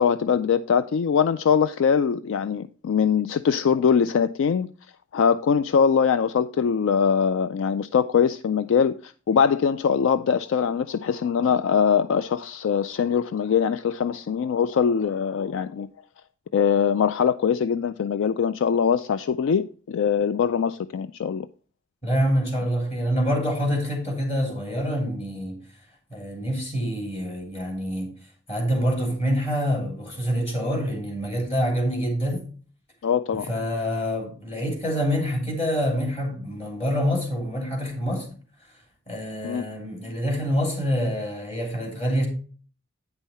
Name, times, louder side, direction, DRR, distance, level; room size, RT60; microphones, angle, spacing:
voice 1, 0.0-4.7 5.1-15.9 16.5-21.5 33.0-33.5 39.4-39.7, left 7 dB, 65° left, 0.3 m, -22 dB
voice 2, 22.0-25.6 26.1-28.1 28.5-32.4 33.5-38.3 39.1-42.3, equal, 30° left, 2.9 m, -26 dB
9.0 x 5.5 x 4.2 m
head